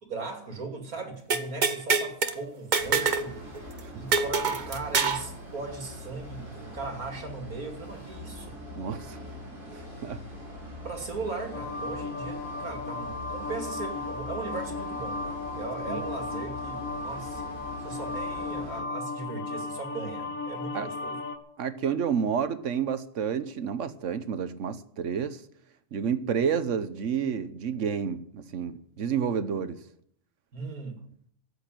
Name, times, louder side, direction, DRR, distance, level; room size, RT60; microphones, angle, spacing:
voice 1, 0.0-3.7 3.9-8.6 10.8-17.5 17.8-21.2 30.5-31.0, right 4 dB, 75° right, 2.9 m, -38 dB
sound 1, 1.3-2.3 2.7-3.3 3.6-3.7 4.1-5.3, right 5 dB, 35° right, 0.9 m, -25 dB
sound 2, 2.8-18.8, left 1 dB, 15° left, 6.8 m, -43 dB
voice 2, 8.7-9.2 10.0-10.2 15.9-16.0 20.7-20.9 21.6-25.4 25.9-29.8, right 7 dB, 60° right, 1.2 m, -29 dB
sound 3, 11.5-21.4, left 3 dB, 70° left, 1.6 m, -35 dB
13.0 x 8.6 x 9.0 m
omnidirectional pair, 1.5 m